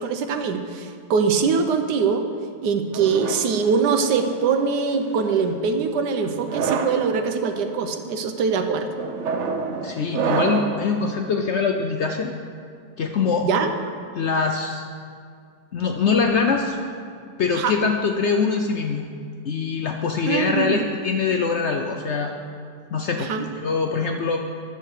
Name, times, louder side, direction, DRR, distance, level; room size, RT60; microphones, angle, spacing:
voice 1, 0.0-2.3 2.6-8.9 13.4-13.7 17.5-17.7 20.3-20.8 23.2-23.5, right 5 dB, 85° right, 7 dB, 1.4 m, -23 dB
sound 1, 2.9-4.4 5.1-5.5 6.3-7.0 7.7-8.0 9.0-10.8, right 5 dB, 60° right, 0.8 m, -27 dB
voice 2, 9.8-12.3 13.0-13.5 14.1-14.8 15.7-16.8 17.4-19.0 19.5-22.3 22.9-24.4, left 5 dB, 65° left, 4 dB, 0.7 m, -23 dB
10.5 x 6.8 x 6.5 m, 2.3 s
omnidirectional pair, 1.7 m